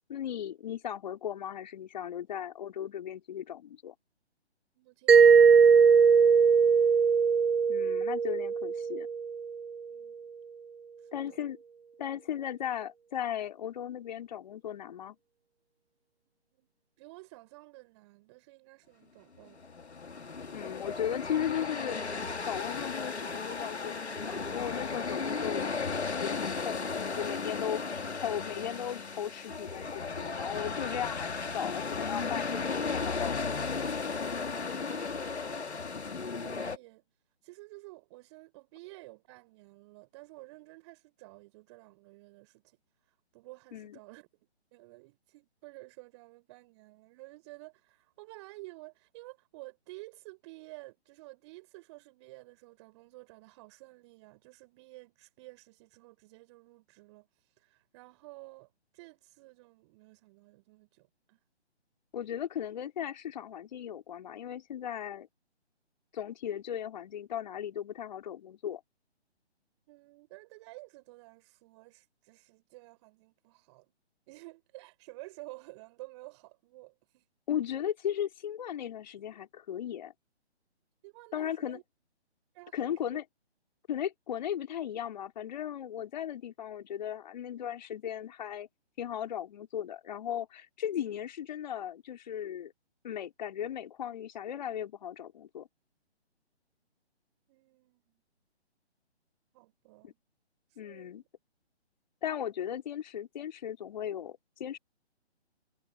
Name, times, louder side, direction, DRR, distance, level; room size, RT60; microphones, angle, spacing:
voice 1, 0.1-3.9 7.7-9.1 11.1-11.6 12.0-15.2 20.5-22.2 22.4-34.4 43.7-44.0 62.1-65.3 66.1-68.8 77.5-80.1 81.3-81.8 82.7-83.2 83.9-88.7 89.0-92.7 93.0-95.7 100.0-100.1 100.8-101.2 102.2-104.8, left 10 dB, 40° left, 4.2 m, -37 dB
voice 2, 4.7-6.9 9.9-10.3 11.0-11.4 16.5-16.7 17.0-19.7 35.1-37.0 37.4-42.8 43.3-44.3 44.7-61.4 69.9-73.9 74.3-77.2 81.0-81.8 82.5-83.2 97.5-98.1 99.5-100.2 100.7-101.3, right 23 dB, 25° right, 6.5 m, -52 dB
Mallet percussion, 5.1-9.7, right 6 dB, 60° right, 1.0 m, -21 dB
sound 1, 19.5-36.8, left 4 dB, 75° left, 2.2 m, -35 dB
figure-of-eight pair, 140°, 33 cm